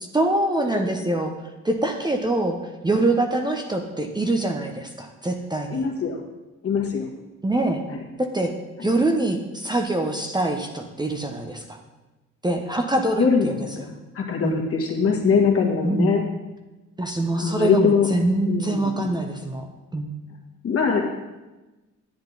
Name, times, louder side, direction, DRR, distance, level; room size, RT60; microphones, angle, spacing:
voice 1, 0.1-1.3 1.6-2.6 2.8-5.9 7.4-7.8 8.2-8.5 8.8-11.8 12.4-13.9 14.4-14.6 15.8-16.1 17.0-19.7 19.9-20.1, right 2 dB, 15° right, 4 dB, 0.9 m, -24 dB
voice 2, 5.7-6.2 6.6-7.1 7.9-8.0 13.2-16.2 17.4-18.1 18.5-19.1 20.6-21.0, left 5 dB, 50° left, 0 dB, 1.9 m, -22 dB
10.5 x 7.8 x 4.0 m, 1.1 s
cardioid pair, 90°, 30 cm